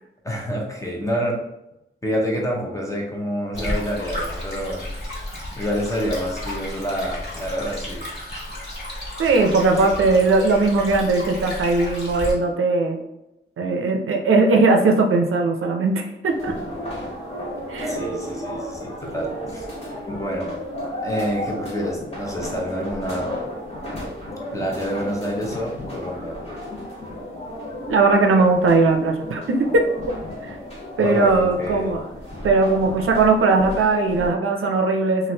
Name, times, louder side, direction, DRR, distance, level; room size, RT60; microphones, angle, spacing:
voice 1, 0.2-1.3 2.0-4.9 5.6-8.1 17.9-19.7 19.9-20.6 21.0-23.3 24.5-26.5 31.0-31.9, equal, 15° left, -1 dB, 0.6 m, -27 dB
Stream, 3.5-12.3, left 1 dB, 55° left, 1.5 m, -32 dB
voice 2, 9.2-13.0 13.6-16.5 17.7-18.0 27.9-29.8 30.4-30.6 31.0-32.1 32.4-35.3, right 3 dB, 80° right, 2 dB, 0.5 m, -19 dB
sound 1, 16.3-34.3, equal, 30° left, 1.2 m, -33 dB
3.1 x 2.4 x 2.8 m, 0.89 s
wide cardioid pair, 155°, 21 cm